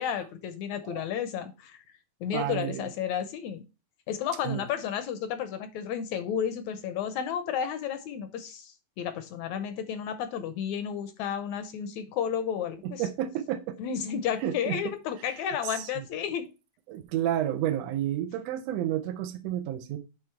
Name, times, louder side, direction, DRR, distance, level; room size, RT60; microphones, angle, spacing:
voice 1, 0.0-1.8 2.2-3.6 4.1-13.0 13.8-16.5, left 8 dB, 75° left, 1.7 m, -32 dB
voice 2, 2.3-2.9 4.5-4.6 12.8-13.8 14.4-14.8 15.8-16.1 16.9-20.0, right 11 dB, 85° right, 1.5 m, -30 dB
9.2 x 3.4 x 4.5 m
omnidirectional pair, 3.9 m